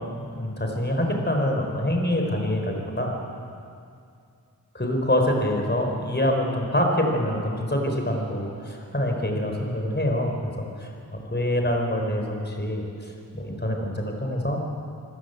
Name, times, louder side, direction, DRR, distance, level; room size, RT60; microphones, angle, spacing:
voice 1, 0.0-3.1 4.7-10.9 11.3-14.6, left 1 dB, 30° left, 2 dB, 4.9 m, -25 dB
26.0 x 16.0 x 8.3 m, 2.4 s
wide cardioid pair, 50°, 36 cm